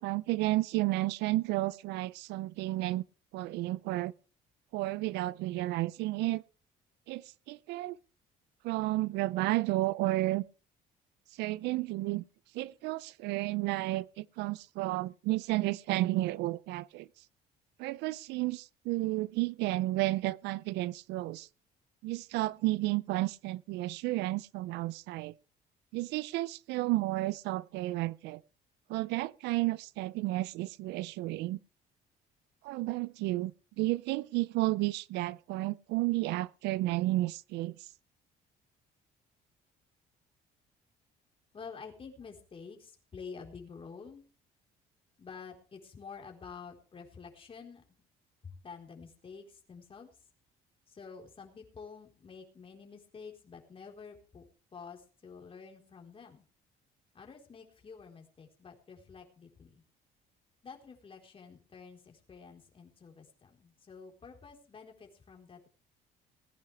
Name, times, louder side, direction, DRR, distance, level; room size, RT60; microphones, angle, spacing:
voice 1, 0.0-3.0 3.3-4.1 4.7-6.4 7.1-8.0 8.6-10.4 11.4-12.2 12.5-17.1 17.8-21.5 22.0-25.3 25.9-28.4 28.9-31.6 32.6-37.8, right 18 dB, 90° right, 0.5 m, -32 dB
voice 2, 41.5-44.2 45.2-47.8 48.4-50.1 50.9-54.5 54.7-56.4 57.1-59.8 60.6-65.7, left 5 dB, 35° left, 4.2 m, -49 dB
20.0 x 10.5 x 3.4 m
cardioid pair, 110°, 17 cm